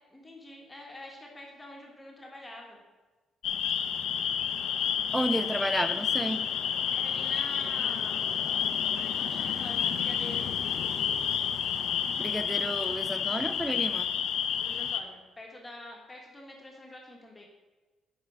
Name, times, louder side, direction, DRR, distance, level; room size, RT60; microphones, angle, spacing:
voice 1, 0.1-2.8 6.9-8.3 8.9-10.5 14.6-17.5, left 1 dB, 15° left, -1 dB, 1.6 m, -46 dB
sound 1, 3.4-15.0, left 8 dB, 75° left, 0.5 m, -30 dB
voice 2, 5.1-6.4 12.2-14.1, right 1 dB, 10° right, 11 dB, 0.5 m, -31 dB
7.3 x 5.3 x 4.8 m, 1.2 s
cardioid pair, 90°, 0 cm